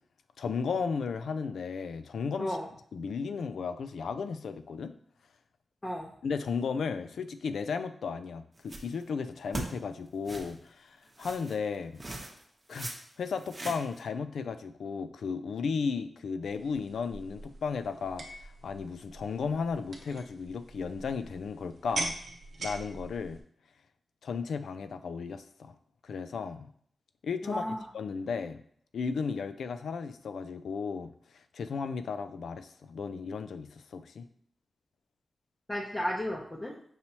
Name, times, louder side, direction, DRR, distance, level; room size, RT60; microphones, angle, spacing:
voice 1, 0.4-2.6 2.9-4.9 6.2-12.0 12.7-12.9 13.2-22.1 22.6-23.4 24.2-25.7 26.0-26.7 27.2-28.6 28.9-31.1 31.5-34.3, left 5 dB, 85° left, 10 dB, 0.3 m, -34 dB
sound 1, 8.6-9.0 9.5-9.7 10.3-10.5 11.2-11.6 12.0-12.4 12.7-12.9 13.3-14.0, right 2 dB, 30° right, 0.8 m, -39 dB
sound 2, 16.4-23.4, right 2 dB, 70° right, 0.7 m, -42 dB
voice 2, 27.4-27.8 35.7-36.7, equal, 20° left, -4 dB, 0.6 m, -33 dB
5.5 x 3.0 x 2.8 m, 0.62 s
cardioid pair, 85°, 0 cm